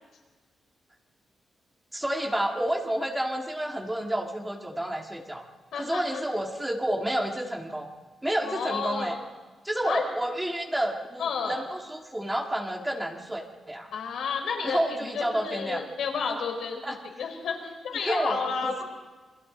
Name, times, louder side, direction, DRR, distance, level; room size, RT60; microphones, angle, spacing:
voice 1, 1.9-5.5 5.7-7.9 8.2-9.2 9.6-13.9 14.6-15.9 16.3-16.4 16.8-17.0 17.9-18.8, right 1 dB, 10° right, 1 dB, 2.0 m, -30 dB
voice 2, 5.7-6.2 8.4-9.2 9.9-10.1 11.2-11.6 13.9-18.8, left 5 dB, 75° left, 2 dB, 4.7 m, -31 dB
28.5 x 23.5 x 3.9 m, 1.3 s
wide cardioid pair, 170°, 0 cm